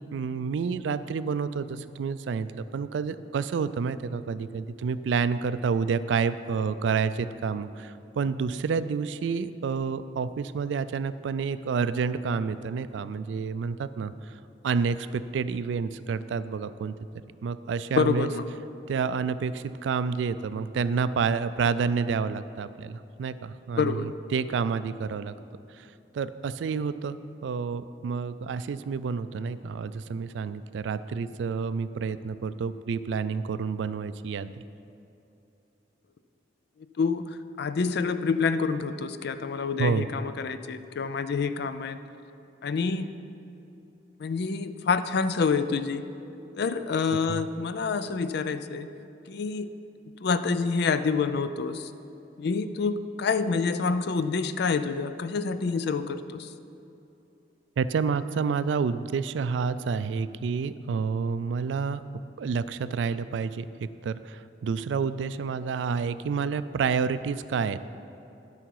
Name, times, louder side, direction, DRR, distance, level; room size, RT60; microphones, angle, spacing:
voice 1, 0.0-14.4 14.6-16.9 17.4-18.3 18.9-25.3 25.8-25.9 26.1-27.2 27.4-34.5 39.8-40.1 47.1-47.4 57.8-62.0 62.4-67.9, right 5 dB, 80° right, 14 dB, 0.3 m, -29 dB
voice 2, 18.0-18.5 23.8-24.1 37.0-37.3 37.6-42.0 42.6-43.2 44.2-46.0 46.6-48.9 49.3-49.7 50.2-51.9 52.4-56.5, left 5 dB, 65° left, 11 dB, 0.4 m, -27 dB
12.5 x 5.7 x 4.7 m, 2.8 s
head